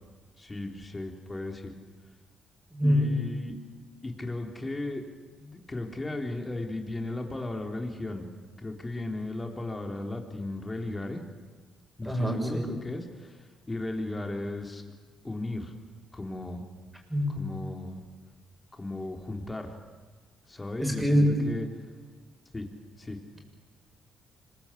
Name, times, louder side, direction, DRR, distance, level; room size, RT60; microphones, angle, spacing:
voice 1, 0.4-1.7 2.8-3.6 4.0-5.0 5.4-8.3 8.6-11.2 12.0-14.8 15.2-15.7 16.1-16.6 17.3-18.0 18.7-19.7 20.5-21.7 22.5-22.7 23.0-23.2, left 2 dB, 20° left, 3 dB, 3.9 m, -35 dB
voice 2, 2.7-3.1 12.0-12.7 17.1-17.4 20.8-21.4, equal, 10° right, 2 dB, 7.1 m, -25 dB
25.5 x 22.5 x 8.6 m, 1.3 s
cardioid pair, 90°, 0 cm